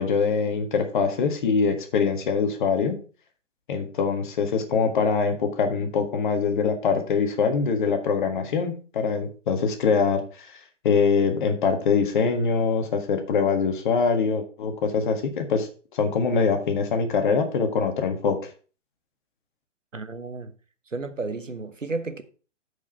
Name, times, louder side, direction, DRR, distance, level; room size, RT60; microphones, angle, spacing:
voice 1, 0.0-2.9 3.7-10.5 10.8-18.4, left 5 dB, 40° left, 1.6 m, -23 dB
voice 2, 19.9-20.5 20.9-22.2, right 3 dB, 80° right, 1.2 m, -32 dB
8.7 x 5.1 x 5.7 m
figure-of-eight pair, 125°, 37 cm